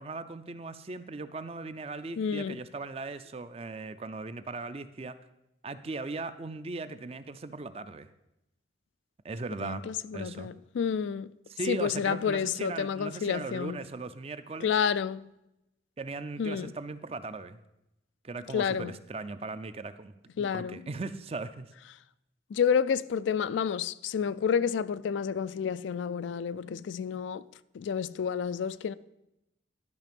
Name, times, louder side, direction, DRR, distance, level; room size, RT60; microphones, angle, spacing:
voice 1, 0.0-5.2 5.6-8.1 9.2-9.8 10.1-10.5 11.5-14.7 16.0-17.6 18.2-21.7, right 3 dB, 30° right, 0.4 m, -38 dB
voice 2, 2.2-2.6 9.6-11.3 11.7-13.8 14.6-15.3 16.4-16.7 18.5-18.9 20.4-20.8 22.5-27.4 27.7-28.9, left 7 dB, 80° left, 0.3 m, -30 dB
11.5 x 5.8 x 5.3 m
head